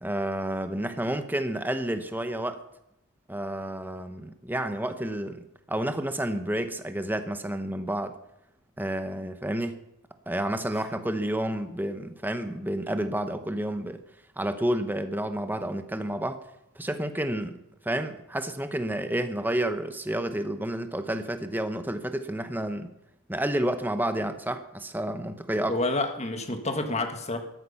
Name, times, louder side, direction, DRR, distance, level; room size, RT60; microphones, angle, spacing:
voice 1, 0.0-2.6 3.3-8.1 8.8-9.8 10.3-14.0 14.4-16.4 16.8-17.6 17.8-22.9 23.3-25.8, right 1 dB, 10° right, 9 dB, 0.9 m, -30 dB
voice 2, 25.7-27.4, left 2 dB, 30° left, 6 dB, 1.6 m, -28 dB
13.5 x 12.5 x 5.7 m, 0.85 s
head